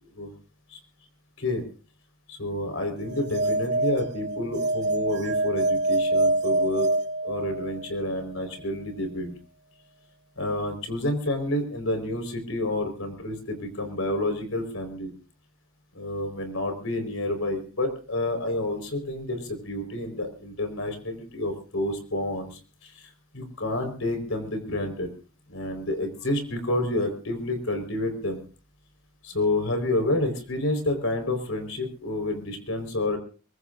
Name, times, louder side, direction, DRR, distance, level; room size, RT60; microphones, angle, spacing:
voice 1, 2.3-6.9 7.2-9.3 10.4-15.1 15.9-25.1 25.5-28.4 29.2-33.2, left 1 dB, 70° left, 6 dB, 4.6 m, -29 dB
sound 1, 3.1-7.9, right 2 dB, 55° right, 1.2 m, -26 dB
23.0 x 23.0 x 2.6 m, 0.38 s
head